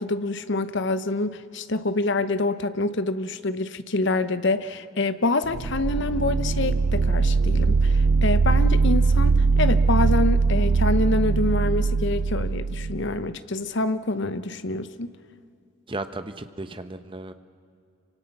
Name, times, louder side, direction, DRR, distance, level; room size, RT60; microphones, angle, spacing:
voice 1, 0.0-15.1, left 2 dB, 55° left, 0.9 m, -26 dB
sound 1, 5.4-13.2, right 4 dB, 85° right, 0.5 m, -21 dB
voice 2, 15.9-17.3, right 2 dB, 25° right, 0.9 m, -35 dB
26.5 x 24.5 x 6.0 m
head